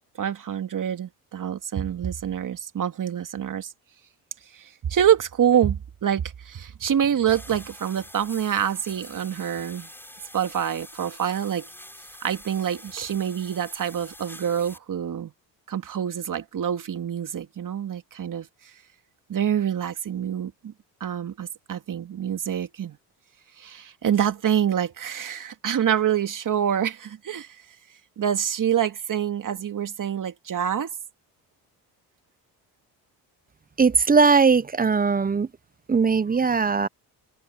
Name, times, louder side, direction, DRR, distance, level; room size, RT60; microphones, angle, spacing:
voice 1, 0.2-3.7 4.5-9.9 10.3-11.7 12.2-15.3 15.7-18.5 19.3-20.7 21.0-23.0 23.6-27.5 28.2-30.9, right 9 dB, 50° right, 2.3 m, -26 dB
sound 1, 7.3-14.8, left 1 dB, 5° left, 7.6 m, -45 dB
voice 2, 33.8-35.5 35.9-36.9, right 5 dB, 20° right, 0.8 m, -19 dB
supercardioid pair, 70°, 41 cm